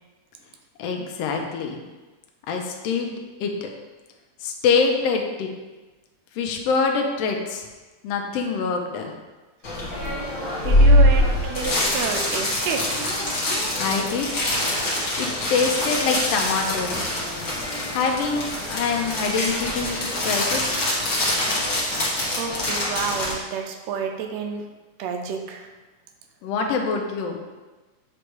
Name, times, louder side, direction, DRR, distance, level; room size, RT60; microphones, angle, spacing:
voice 1, 0.8-1.8 2.5-3.1 3.4-3.7 4.4-5.5 6.4-7.7 8.0-9.1 13.8-14.3 15.2-17.0 17.9-20.7 26.4-27.4, left 5 dB, 75° left, 3 dB, 1.6 m, -25 dB
sound 1, 9.6-23.3, left 1 dB, 45° left, 1.0 m, -23 dB
voice 2, 10.6-13.0 22.3-24.6 25.0-25.7, right 6 dB, 75° right, 4 dB, 1.6 m, -29 dB
8.2 x 3.3 x 4.6 m, 1.2 s
omnidirectional pair, 3.5 m